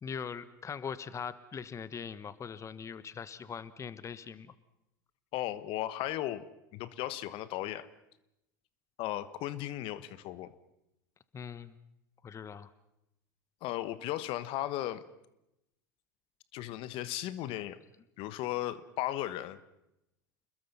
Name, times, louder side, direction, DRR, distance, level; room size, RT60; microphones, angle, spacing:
voice 1, 0.0-4.5 11.3-11.8 12.2-12.7, left 6 dB, 30° left, 16 dB, 1.1 m, -41 dB
voice 2, 5.3-6.5 6.7-7.9 9.0-10.5 13.6-15.0 16.5-17.8 18.2-19.6, left 14 dB, 55° left, 15 dB, 1.3 m, -36 dB
29.0 x 21.0 x 5.5 m, 0.85 s
hypercardioid pair, 85°, 11 cm